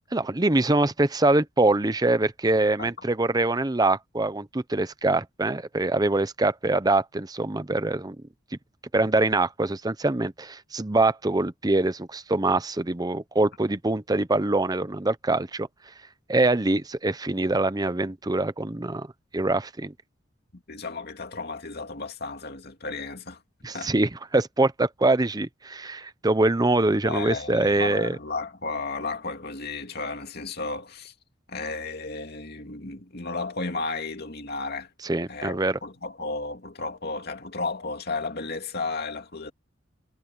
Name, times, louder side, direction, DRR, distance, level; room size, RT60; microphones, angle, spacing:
voice 1, 0.1-8.2 8.9-15.7 16.3-19.1 19.3-19.9 23.6-28.2 35.0-35.8, right 2 dB, 20° right, 0.7 m, -24 dB
voice 2, 20.7-23.4 23.7-23.9 27.0-31.1 31.5-34.9 35.3-39.5, left 3 dB, 55° left, 2.5 m, -33 dB
head